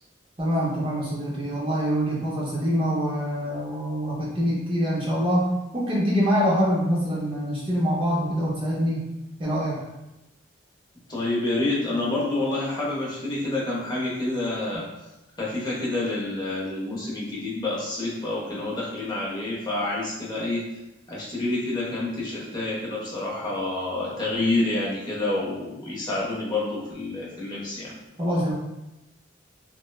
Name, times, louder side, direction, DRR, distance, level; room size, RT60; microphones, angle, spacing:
voice 1, 0.4-5.5 5.7-9.0 9.4-9.8 28.2-28.5, equal, 25° right, -5 dB, 0.5 m, -25 dB
voice 2, 11.1-14.9 15.4-20.7 21.1-27.9, left 2 dB, 25° left, -5 dB, 0.6 m, -28 dB
3.0 x 2.1 x 2.2 m, 0.97 s
head